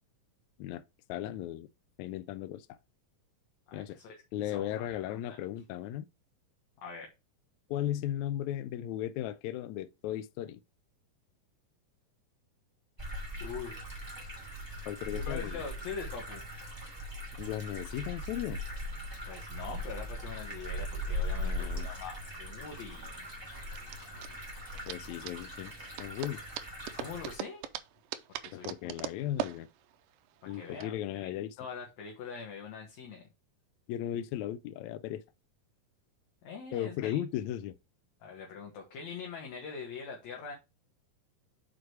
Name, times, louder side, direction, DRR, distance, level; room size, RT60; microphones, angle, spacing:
voice 1, 1.1-1.7 2.0-2.8 3.7-4.0 4.3-6.1 7.7-10.6 14.9-15.6 17.4-18.6 21.4-21.9 24.9-25.7 26.0-26.4 28.5-29.7 30.5-31.5 33.9-35.2 36.7-37.8, left 12 dB, 85° left, 1.6 m, -36 dB
voice 2, 3.7-5.4 6.8-7.1 13.4-13.8 15.1-16.4 19.3-23.3 27.0-27.6 28.4-28.9 30.5-31.3 31.6-33.3 36.4-37.2 38.2-40.5, left 5 dB, 65° left, 2.3 m, -43 dB
sound 1, 13.0-27.4, equal, 10° right, 2.3 m, -40 dB
sound 2, 21.9-30.9, right 12 dB, 85° right, 2.2 m, -42 dB
6.3 x 4.9 x 4.6 m
omnidirectional pair, 3.9 m